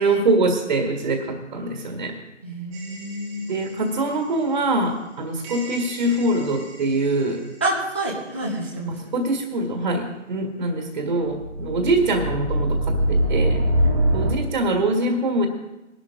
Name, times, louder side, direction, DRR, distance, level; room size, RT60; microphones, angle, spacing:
voice 1, 0.0-2.2 3.5-7.4 9.1-13.6 14.1-15.5, right 2 dB, 40° right, 3 dB, 1.7 m, -23 dB
voice 2, 2.4-3.6 7.6-9.1 13.8-14.3, right 1 dB, 10° left, -3 dB, 0.5 m, -29 dB
sound 1, 2.7-3.8 5.4-7.3 11.2-14.3, right 1 dB, 10° right, 0.9 m, -25 dB
20.5 x 11.5 x 3.7 m, 0.99 s
figure-of-eight pair, 145°, 38 cm